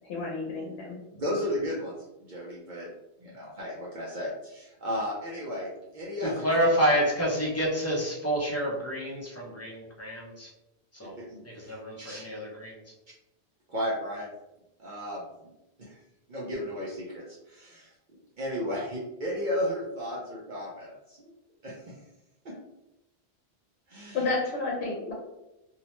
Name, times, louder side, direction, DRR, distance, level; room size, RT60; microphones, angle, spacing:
voice 1, 0.0-1.0 24.1-25.1, left 3 dB, 85° left, -2 dB, 0.9 m, -31 dB
voice 2, 1.1-1.9 2.2-2.9 3.2-6.5 11.0-11.4 12.0-12.3 13.7-14.3 14.8-15.5 15.8-16.0 16.3-17.9 18.4-21.3 21.6-22.0 22.4-22.5 23.9-24.3, equal, 55° right, -4 dB, 0.6 m, -34 dB
voice 3, 6.2-10.5 11.0-11.2 11.7-12.8, equal, 20° left, -4 dB, 0.5 m, -28 dB
2.7 x 2.0 x 2.9 m, 0.91 s
omnidirectional pair, 1.1 m